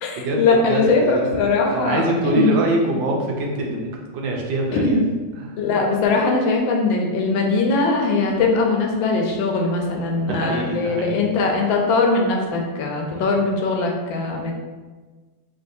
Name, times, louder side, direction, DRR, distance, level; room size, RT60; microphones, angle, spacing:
voice 1, 0.0-2.6 2.9-3.0 4.7-5.1 5.6-14.5, left 3 dB, 85° left, 1 dB, 1.4 m, -20 dB
voice 2, 0.7-1.4 1.7-5.0 10.1-11.3 13.1-13.3, right 2 dB, 80° right, -1 dB, 1.4 m, -24 dB
4.6 x 3.3 x 2.6 m, 1.3 s
omnidirectional pair, 2.1 m